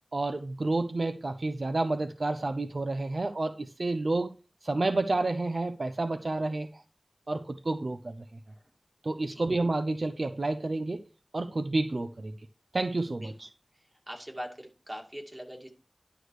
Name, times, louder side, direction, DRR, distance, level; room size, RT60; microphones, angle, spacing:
voice 1, 0.1-4.3 4.6-6.8 7.3-8.2 9.0-11.0 11.3-12.3 12.7-13.5, right 2 dB, 70° right, 0.5 m, -30 dB
voice 2, 14.1-15.7, equal, 30° right, 2.2 m, -41 dB
11.0 x 6.4 x 3.2 m
wide cardioid pair, 45°, 0 cm